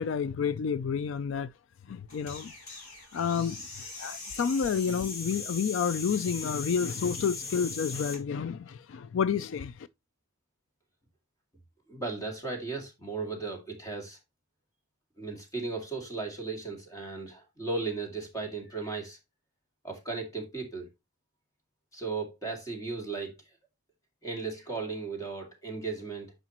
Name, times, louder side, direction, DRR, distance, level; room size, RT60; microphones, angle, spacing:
voice 1, 0.0-1.5 1.9-2.5 3.1-9.9, left 6 dB, 60° left, 0.3 m, -30 dB
sound 1, 2.1-8.2, left 3 dB, 80° left, 2.9 m, -40 dB
voice 2, 11.9-14.2 15.2-19.2 19.8-20.9 21.9-23.3 24.2-26.3, right 4 dB, 15° left, 2.3 m, -36 dB
9.7 x 5.0 x 2.9 m
head